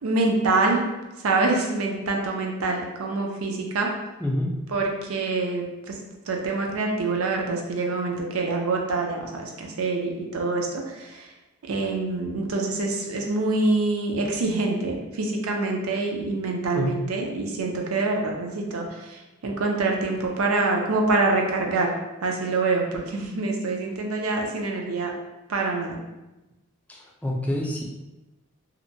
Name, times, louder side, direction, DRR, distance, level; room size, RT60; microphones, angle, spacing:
voice 1, 0.0-0.8 1.2-3.9 4.7-6.0 6.3-11.3 11.7-21.9 22.2-25.1 25.5-26.0, right 3 dB, 80° right, 1 dB, 0.5 m, -25 dB
voice 2, 4.2-4.5 16.7-17.0 26.9-27.8, left 1 dB, 5° left, -2 dB, 0.3 m, -27 dB
2.8 x 2.1 x 2.6 m, 1.0 s
head